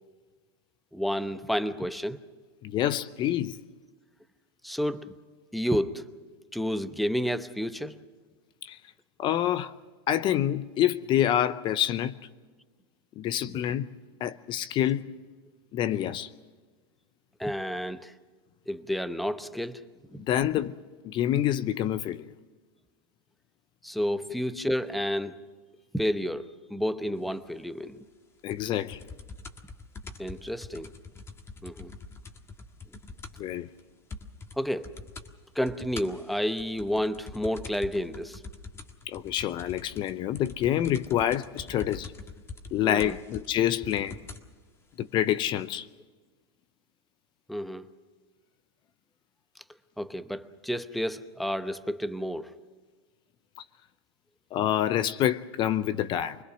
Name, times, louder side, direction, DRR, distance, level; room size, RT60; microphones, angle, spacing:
voice 1, 0.9-2.2 4.6-5.1 5.5-6.1 6.5-8.0 17.4-18.1 18.7-19.8 20.1-20.2 23.8-25.4 25.9-28.0 30.2-30.9 31.6-31.9 34.6-34.9 35.5-38.4 42.8-43.2 47.5-47.9 50.0-52.5, equal, ahead, 0.8 m, -30 dB
voice 2, 2.6-3.6 8.6-8.8 9.2-9.7 10.1-12.2 13.2-13.9 14.2-15.1 15.7-16.3 20.3-20.8 21.0-22.3 28.4-29.0 33.4-33.7 39.1-42.1 42.7-44.2 45.0-45.9 54.5-56.4, left 11 dB, 35° left, 0.7 m, -27 dB
sound 1, 28.5-33.5 33.8-33.9 34.1-34.6 34.8-35.3 35.7-44.5 45.3-45.4, left 3 dB, 20° left, 1.7 m, -44 dB
25.5 x 20.5 x 6.2 m
hypercardioid pair, 125°, 14 cm